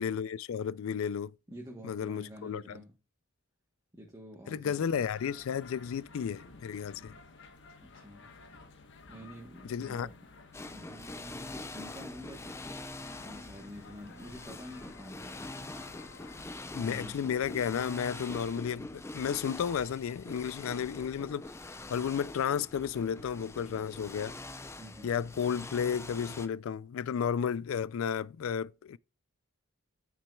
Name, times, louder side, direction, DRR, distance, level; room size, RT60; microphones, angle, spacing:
voice 1, 0.0-1.3 1.8-2.8 4.5-7.1 9.6-10.1 16.7-21.5 21.9-24.4 25.0-29.0, left 7 dB, 75° left, 0.3 m, -33 dB
voice 2, 1.5-2.9 3.9-5.0 7.8-8.3 9.1-10.3 10.7-12.7 13.2-15.8 16.6-17.2 24.8-25.1, equal, 15° right, 1.1 m, -48 dB
sound 1, 4.8-16.5, left 3 dB, 60° left, 1.1 m, -54 dB
sound 2, 10.5-26.5, left 2 dB, 15° left, 0.5 m, -44 dB
9.8 x 6.1 x 2.3 m
head